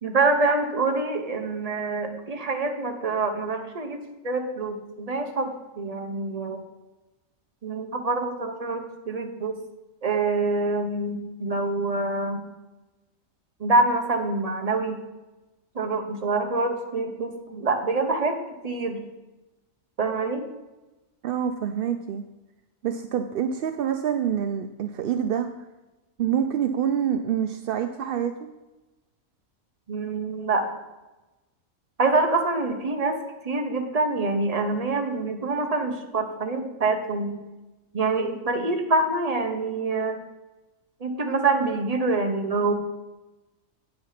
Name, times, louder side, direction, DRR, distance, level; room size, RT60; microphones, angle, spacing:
voice 1, 0.0-6.6 7.6-9.6 10.0-12.4 13.6-15.0 15.7-19.0 20.0-20.4 29.9-30.6 32.0-33.2 33.4-37.4 37.9-40.2 41.0-42.7, right 3 dB, 30° right, 4 dB, 1.0 m, -26 dB
voice 2, 21.2-22.2 22.8-25.5 26.2-28.3, right 8 dB, 65° right, 7 dB, 0.5 m, -26 dB
8.9 x 6.4 x 5.8 m, 1.1 s
omnidirectional pair, 1.4 m